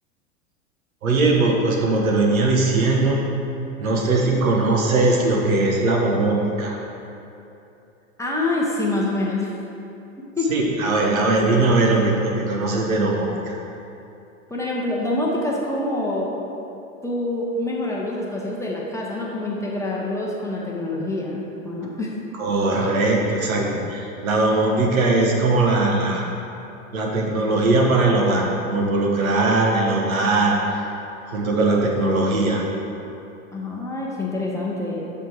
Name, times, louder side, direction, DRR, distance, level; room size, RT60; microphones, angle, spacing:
voice 1, 1.0-3.2 3.8-6.8 10.5-13.6 22.3-26.3 26.9-30.8 31.3-32.6, right 2 dB, 80° right, -1 dB, 1.2 m, -20 dB
voice 2, 8.2-9.5 10.4-10.5 14.5-16.3 17.0-22.1 33.5-35.0, left 2 dB, 5° left, -4 dB, 0.7 m, -26 dB
7.1 x 3.4 x 4.6 m, 2.8 s
hypercardioid pair, 95°, 41 cm